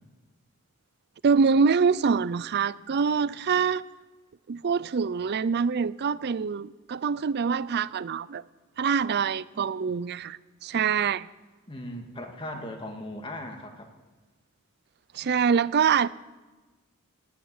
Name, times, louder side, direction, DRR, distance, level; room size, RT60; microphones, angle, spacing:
voice 1, 1.2-3.8 4.5-8.4 8.8-11.3 15.1-16.1, right 6 dB, 50° right, 0.4 m, -25 dB
voice 2, 11.7-13.9, left 1 dB, 25° left, 2.0 m, -38 dB
19.5 x 7.1 x 9.3 m
head